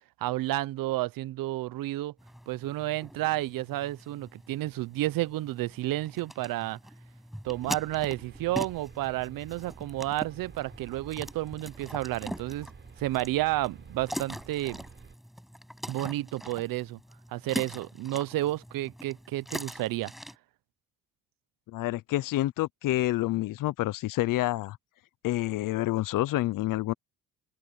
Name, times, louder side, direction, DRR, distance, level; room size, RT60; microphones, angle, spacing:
voice 1, 0.2-2.1 2.5-6.8 7.4-12.7 13.0-14.8 15.9-17.0 17.3-20.1, right 16 dB, 85° right, 0.7 m, -31 dB
sound 1, 2.2-20.4, equal, ahead, 5.9 m, -43 dB
sound 2, 7.4-15.1, right 6 dB, 35° right, 5.1 m, -51 dB
voice 2, 21.7-24.8 25.2-26.9, left 16 dB, 70° left, 0.6 m, -28 dB
open air
cardioid pair, 160°, 33 cm